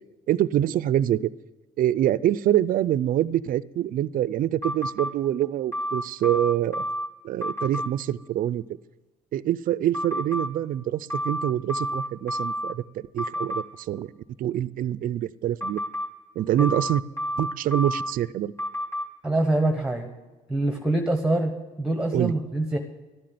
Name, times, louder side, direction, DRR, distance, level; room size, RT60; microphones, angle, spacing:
voice 1, 0.3-1.3 1.8-6.8 7.2-8.6 9.3-14.1 14.4-15.8 16.4-17.0 17.4-18.5 22.1-22.3, right 12 dB, 55° right, 19 dB, 0.5 m, -25 dB
sound 1, 4.6-5.1 5.7-7.1 7.4-7.9 9.9-10.5 11.1-12.7 13.2-13.6 15.6-16.1 16.6-18.1 18.6-19.0, equal, 15° left, 3.3 m, -29 dB
voice 2, 19.2-20.1 20.5-21.5 21.8-22.8, right 2 dB, 5° right, 6 dB, 1.1 m, -24 dB
12.5 x 7.6 x 9.5 m, 1.2 s
cardioid pair, 110°, 17 cm